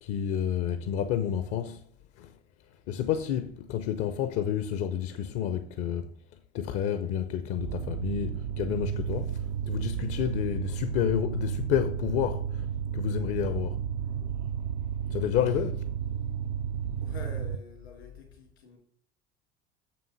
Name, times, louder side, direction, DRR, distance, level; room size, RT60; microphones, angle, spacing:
voice 1, 0.0-1.8 2.2-2.3 2.9-6.1 6.5-12.7 12.9-13.8 15.1-15.8, left 9 dB, 45° left, 0.7 m, -30 dB
sound 1, 7.6-17.6, right 8 dB, 55° right, 0.5 m, -32 dB
voice 2, 14.0-14.3 17.0-18.8, left 4 dB, 80° left, 2.9 m, -47 dB
7.1 x 6.1 x 6.0 m
figure-of-eight pair, 60°, 32 cm